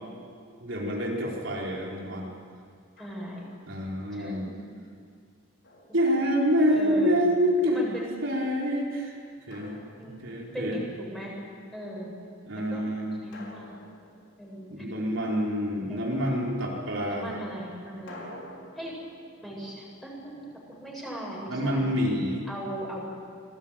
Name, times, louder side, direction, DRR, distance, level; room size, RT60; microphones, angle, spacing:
voice 1, 0.6-2.3 3.7-4.5 5.9-7.9 8.2-9.2 9.5-9.8 10.2-10.8 12.5-13.2 14.7-17.4 21.5-22.5, equal, 65° right, -3 dB, 4.6 m, -27 dB
Drum, 3.0-3.7 5.6-6.7 9.5-10.7 13.3-15.0 18.1-21.0, left 1 dB, 65° left, 5.1 m, -50 dB
voice 2, 3.0-3.4 4.1-4.5 6.7-7.2 7.7-8.1 10.0-10.1 10.5-11.3 11.7-12.1 12.5-12.8 13.2-13.8 14.4-14.8 15.9-16.4 17.1-18.3 18.7-19.0 19.4-21.9 22.5-23.1, right 1 dB, ahead, -3 dB, 7.8 m, -38 dB
27.0 x 20.0 x 9.1 m, 2.3 s
head